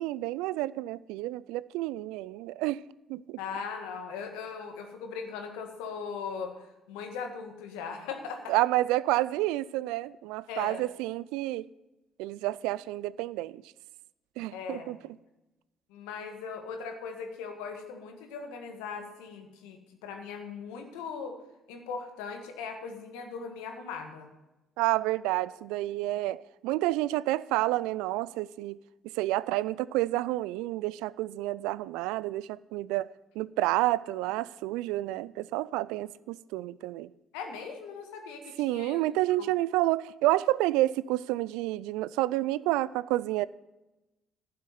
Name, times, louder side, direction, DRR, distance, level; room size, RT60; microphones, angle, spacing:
voice 1, 0.0-2.8 3.1-3.4 8.5-11.7 12.2-13.6 14.4-15.0 24.8-28.8 29.1-33.1 33.4-37.1 38.6-43.5, right 17 dB, 75° right, 0.3 m, -29 dB
voice 2, 3.4-8.6 10.5-10.8 14.5-15.0 15.9-21.3 21.7-24.3 37.3-39.0 39.4-39.5, left 5 dB, 80° left, 1.7 m, -39 dB
12.0 x 6.7 x 9.2 m
hypercardioid pair, 55°, 0 cm